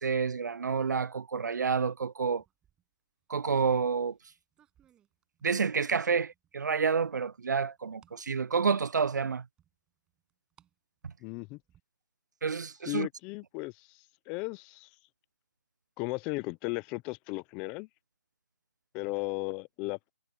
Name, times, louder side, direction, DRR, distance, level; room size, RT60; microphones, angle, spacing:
voice 1, 0.0-2.4 3.3-4.2 5.4-9.4 11.0-11.1 12.4-13.1, right 5 dB, 75° right, 0.4 m, -29 dB
sound 1, 2.4-2.8 3.5-5.7 6.2-6.7 7.1-8.2 8.6-8.7 9.6-10.7 11.0-11.8, right 10 dB, 10° right, 7.9 m, -64 dB
voice 2, 11.2-11.6 12.9-13.9 14.3-14.9 16.0-17.9 18.9-20.0, left 25 dB, 10° left, 0.4 m, -35 dB
hypercardioid pair, 165°, 10 cm